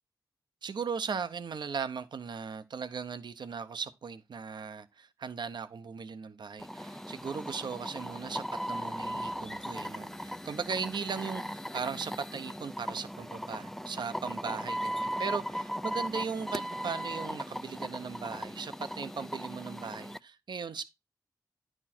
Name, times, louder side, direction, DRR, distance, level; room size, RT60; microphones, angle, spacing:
voice 1, 0.6-20.8, right 6 dB, 70° right, 0.8 m, -38 dB
sound 1, 6.6-20.2, equal, 5° left, 0.4 m, -38 dB
10.0 x 4.4 x 4.3 m
cardioid pair, 50°, 8 cm